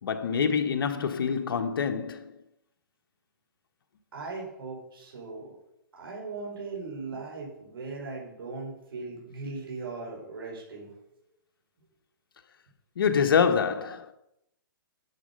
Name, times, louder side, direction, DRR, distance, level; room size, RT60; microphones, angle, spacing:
voice 1, 0.0-2.3 13.0-14.0, left 6 dB, 70° left, 1.3 m, -25 dB
voice 2, 4.1-5.6 5.9-10.9, right 3 dB, 75° right, 4.9 m, -38 dB
9.8 x 7.7 x 5.4 m
hypercardioid pair, 155°, 12 cm